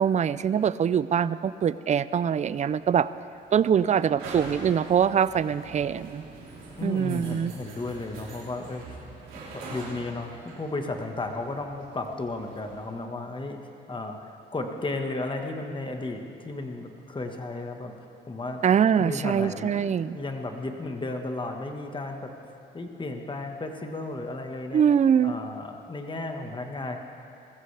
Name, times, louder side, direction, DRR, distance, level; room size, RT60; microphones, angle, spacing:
voice 1, 0.0-3.1 3.5-6.2 6.8-7.5 18.6-20.2 24.7-25.4, right 8 dB, 35° right, 16 dB, 0.4 m, -23 dB
sound 1, 2.4-12.9, right 3 dB, 90° right, 3.3 m, -44 dB
voice 2, 6.8-9.1 9.5-17.9 18.3-18.6 19.0-22.3 22.7-24.8 25.2-27.0, left 2 dB, 25° left, 4 dB, 1.4 m, -34 dB
20.0 x 15.0 x 3.4 m, 2.8 s
cardioid pair, 90°, 20 cm